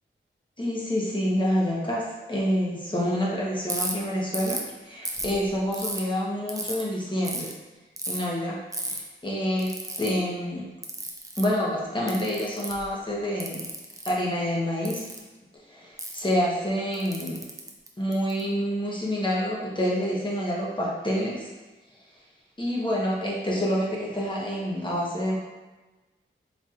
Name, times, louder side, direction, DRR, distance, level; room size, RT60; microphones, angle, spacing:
voice 1, 0.6-7.5 8.1-10.7 11.4-13.7 14.1-15.0 15.7-17.4 18.0-21.5 22.6-25.4, equal, 25° left, -4 dB, 0.9 m, -27 dB
Ratchet pawl, 3.7-3.9 4.3-4.7 5.1-6.0 6.5-6.8 7.2-7.5 8.0-8.2 8.7-9.0 9.6-10.1 10.8-11.5 12.1-12.9 13.4-14.1 14.8-15.2 16.0-16.2 16.9-18.4, right 1 dB, 15° right, 0.4 m, -33 dB
4.2 x 2.8 x 2.4 m, 1.2 s
wide cardioid pair, 70°, 21 cm